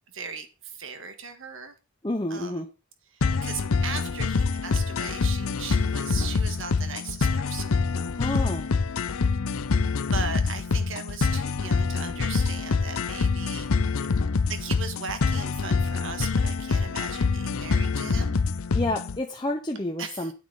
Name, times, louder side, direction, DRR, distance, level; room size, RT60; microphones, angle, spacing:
voice 1, 0.1-1.7 2.3-2.6 3.1-7.8 8.3-8.6 10.1-13.7 14.5-18.4 20.0-20.3, right 5 dB, 65° right, 1.6 m, -38 dB
voice 2, 2.0-2.7 8.1-8.7 18.7-20.3, left 1 dB, 20° left, 0.8 m, -29 dB
sound 1, 3.2-19.2, left 4 dB, 75° left, 0.6 m, -26 dB
9.8 x 9.5 x 3.9 m
head